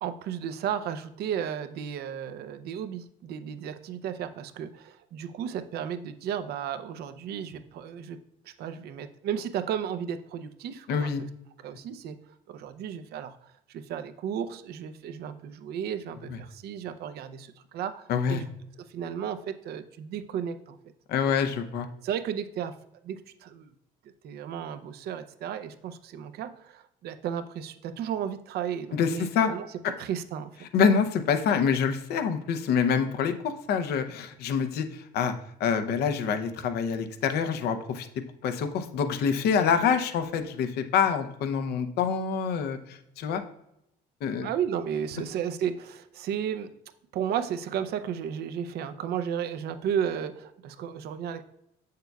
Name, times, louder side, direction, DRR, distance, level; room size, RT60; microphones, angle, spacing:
voice 1, 0.0-8.2 8.6-11.3 11.6-12.2 12.5-13.3 13.7-18.5 18.9-20.8 22.0-22.7 23.0-23.7 24.2-29.6 30.0-30.5 44.4-46.7 47.1-51.4, right 8 dB, 70° right, 10 dB, 0.6 m, -33 dB
voice 2, 10.9-11.2 16.3-16.4 18.1-18.4 21.1-21.9 28.9-29.5 29.8-29.9 30.7-35.3 35.6-38.1 38.4-43.4 44.2-44.5, left 6 dB, 70° left, 9 dB, 0.7 m, -26 dB
7.8 x 6.6 x 2.3 m, 0.80 s
cardioid pair, 110°, 17 cm